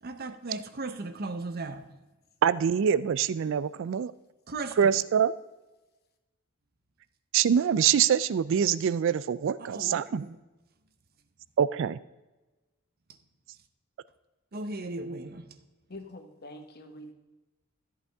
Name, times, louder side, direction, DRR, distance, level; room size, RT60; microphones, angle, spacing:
voice 1, 0.0-1.9 4.5-4.9 9.6-10.4 13.1-13.2 14.5-15.6, right 2 dB, 45° right, 0.8 m, -37 dB
voice 2, 2.4-4.1 4.8-5.3 7.3-10.2 11.6-12.0, right 8 dB, 60° right, 0.3 m, -24 dB
voice 3, 15.9-17.1, left 1 dB, 45° left, 1.3 m, -45 dB
13.5 x 8.3 x 3.5 m
head